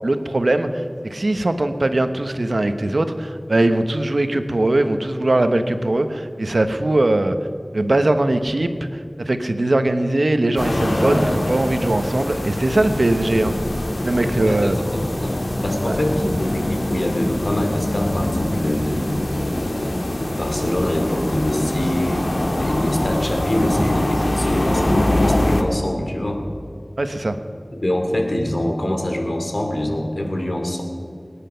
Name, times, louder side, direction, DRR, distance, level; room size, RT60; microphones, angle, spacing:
voice 1, 0.0-7.4 7.7-13.5 14.0-14.7 15.9-16.0 27.0-27.4, right 2 dB, 85° right, 8 dB, 1.1 m, -20 dB
sound 1, 10.6-25.6, left 1 dB, 85° left, 1.8 m, -23 dB
voice 2, 14.4-15.3 15.6-26.4 27.7-30.8, left 1 dB, 65° left, 3 dB, 2.5 m, -25 dB
23.5 x 10.0 x 5.7 m, 2.3 s
wide cardioid pair, 45°, 0 cm